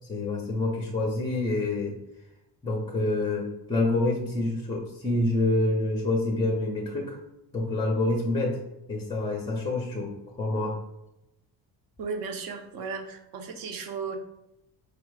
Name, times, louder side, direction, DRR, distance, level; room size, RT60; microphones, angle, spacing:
voice 1, 0.1-1.9 2.6-7.2 7.5-8.6 8.9-10.8, left 2 dB, 10° left, -1 dB, 0.5 m, -27 dB
voice 2, 12.0-14.2, right 5 dB, 55° right, 6 dB, 0.7 m, -35 dB
4.9 x 2.1 x 4.6 m, 0.88 s
cardioid pair, 155°, 42 cm